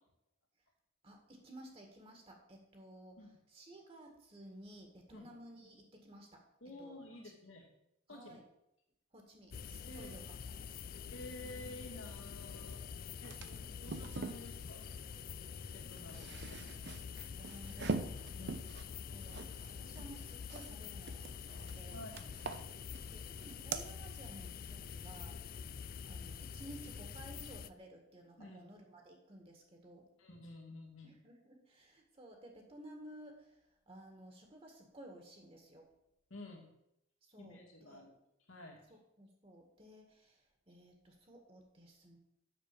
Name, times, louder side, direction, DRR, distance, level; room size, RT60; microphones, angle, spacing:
voice 1, 1.0-3.2 3.5-6.4 6.8-7.0 8.1-8.4 9.1-10.8 13.4-13.7 15.6-15.7 16.1-16.4 17.4-18.6 19.1-22.0 23.1-25.4 26.1-30.0 31.0-33.5 33.9-35.9 37.3-37.6 37.9-38.0 38.9-40.4 40.7-42.2, right 1 dB, 30° right, 2 dB, 1.7 m, -55 dB
voice 2, 6.6-7.7 8.1-8.4 9.9-10.1 11.1-12.8 13.2-13.4 13.8-14.9 15.7-16.6 18.3-18.8 21.9-22.2 28.4-28.7 30.2-31.2 36.3-36.7 37.4-38.1 38.5-38.8, left 1 dB, 75° left, 1 dB, 2.4 m, -51 dB
sound 1, 9.5-27.7, left 6 dB, 45° left, 0.3 m, -46 dB
sound 2, 12.7-12.8 13.1-14.4 15.8-20.7 21.0-21.8 22.1-23.1 23.4-23.8, right 4 dB, 55° right, 0.7 m, -43 dB
7.6 x 6.7 x 6.7 m, 0.81 s
head